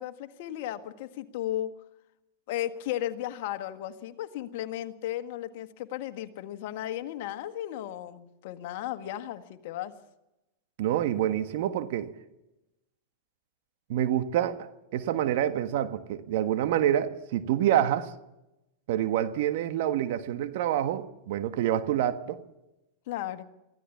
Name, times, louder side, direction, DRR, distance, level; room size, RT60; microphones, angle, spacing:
voice 1, 0.0-1.7 2.5-9.9 23.1-23.4, left 13 dB, 60° left, 1.6 m, -35 dB
voice 2, 10.8-12.1 13.9-18.1 18.9-22.4, right 11 dB, 65° right, 1.4 m, -27 dB
23.5 x 15.5 x 7.2 m
hypercardioid pair, 105°, 0 cm